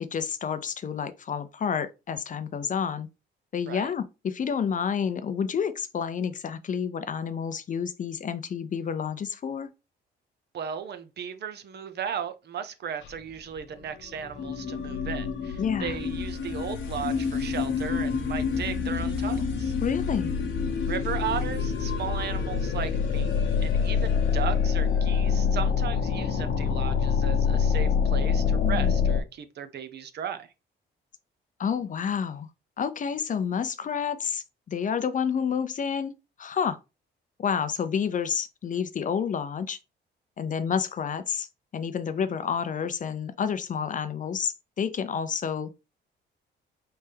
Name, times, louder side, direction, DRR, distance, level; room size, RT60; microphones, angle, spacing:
voice 1, 0.0-3.1 3.5-9.7 15.6-15.9 19.8-20.3 28.6-29.0 31.6-32.5 32.8-36.1 36.4-36.8 37.4-39.8 40.4-41.5 41.7-45.7, left 7 dB, 40° left, 0.5 m, -29 dB
voice 2, 10.5-19.7 20.9-30.5, right 8 dB, 55° right, 0.7 m, -36 dB
sound 1, 13.0-13.1 13.6-13.7 13.9-29.2, left 6 dB, 70° left, 0.9 m, -26 dB
4.2 x 3.4 x 3.3 m
cardioid pair, 90°, 20 cm